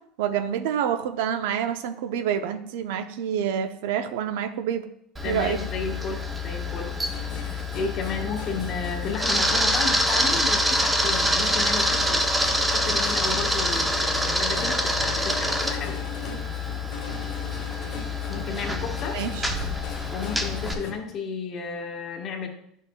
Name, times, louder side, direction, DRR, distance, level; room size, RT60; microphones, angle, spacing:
voice 1, 0.2-4.8 5.2-5.6 19.1-19.5, right 9 dB, 75° right, 10 dB, 0.5 m, -27 dB
voice 2, 5.2-6.9 7.3-12.2 12.7-16.0 18.3-19.2 20.1-22.5, left 5 dB, 35° left, 2 dB, 1.1 m, -33 dB
Camera, 5.2-20.7, left 1 dB, 5° right, 0.6 m, -26 dB
sound 1, 7.0-20.9, left 4 dB, 65° left, 1.2 m, -40 dB
9.8 x 6.4 x 2.2 m, 0.74 s
cardioid pair, 165°, 0 cm